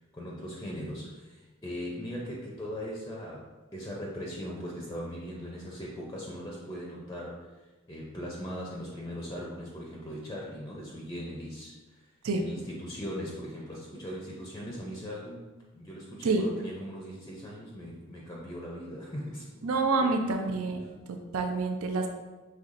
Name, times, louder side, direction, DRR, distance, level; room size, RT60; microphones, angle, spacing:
voice 1, 0.0-7.5 7.9-19.7 20.0-20.2, equal, 15° left, -3 dB, 0.5 m, -39 dB
voice 2, 19.6-20.8 21.1-22.1, right 3 dB, 85° right, 4 dB, 0.5 m, -27 dB
5.6 x 3.2 x 2.5 m, 1.2 s
head